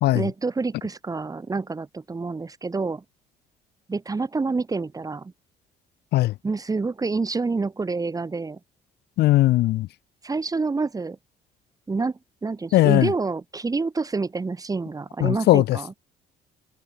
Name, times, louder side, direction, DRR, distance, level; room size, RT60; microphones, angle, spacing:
voice 1, 0.1-3.0 3.9-5.3 6.4-8.6 10.2-11.2 11.9-15.9, right 4 dB, 20° right, 2.8 m, -27 dB
voice 2, 9.2-9.9 12.7-13.1 15.2-15.8, left 16 dB, 75° left, 1.2 m, -18 dB
cardioid pair, 110°, 17 cm